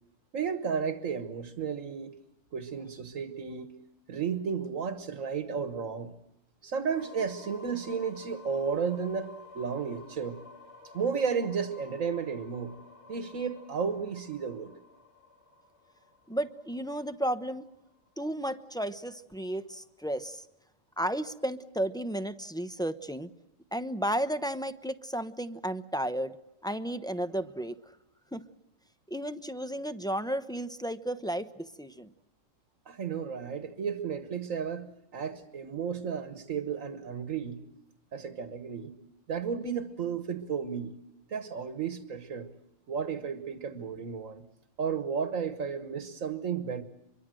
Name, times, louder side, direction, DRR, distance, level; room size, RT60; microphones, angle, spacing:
voice 1, 0.3-2.1 2.5-3.7 4.1-6.1 6.6-10.4 10.9-12.7 13.1-14.7 32.8-37.6 38.1-38.9 39.3-40.9 41.3-42.5 42.9-44.4 44.8-46.8, right 6 dB, 90° right, 9 dB, 1.7 m, -33 dB
sound 1, 6.9-18.7, left 4 dB, 60° left, 3.8 m, -53 dB
voice 2, 16.3-17.6 18.2-20.4 21.0-23.3 23.7-26.3 26.6-27.7 28.3-28.4 29.1-32.1, right 1 dB, 5° left, 10 dB, 0.8 m, -33 dB
25.0 x 23.0 x 7.7 m, 0.85 s
omnidirectional pair, 1.3 m